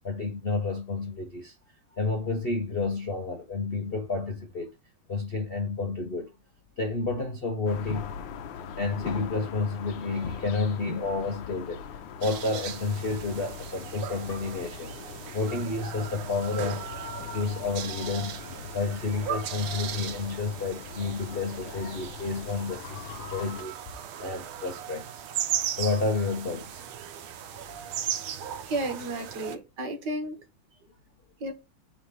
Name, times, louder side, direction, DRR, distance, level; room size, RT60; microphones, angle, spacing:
voice 1, 0.0-1.5 1.9-4.7 5.1-6.3 6.8-8.2 8.8-11.8 12.2-14.9 15.3-16.8 17.3-18.4 18.7-23.7 24.2-25.1 25.8-26.9 27.4-27.6, left 3 dB, 50° left, 0.6 m, -30 dB
sound 1, 7.7-23.6, left 6 dB, 70° left, 1.4 m, -41 dB
sound 2, 12.2-29.6, right 9 dB, 80° right, 1.6 m, -37 dB
voice 2, 28.6-30.4 31.4-31.5, right 2 dB, 55° right, 2.0 m, -33 dB
4.8 x 4.1 x 5.6 m
omnidirectional pair, 2.3 m